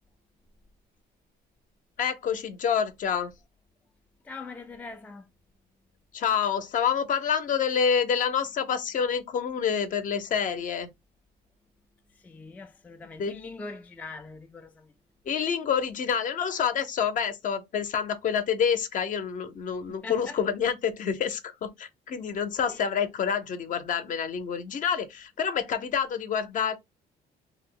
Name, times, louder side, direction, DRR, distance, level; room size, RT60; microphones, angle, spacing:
voice 1, 2.0-3.3 6.1-10.9 13.2-13.3 15.3-26.8, left 7 dB, 50° left, 0.6 m, -27 dB
voice 2, 4.2-5.3 12.2-14.9 20.0-20.4 22.7-22.9, left 3 dB, 10° left, 0.3 m, -42 dB
2.8 x 2.0 x 3.7 m
cardioid pair, 110°, 17 cm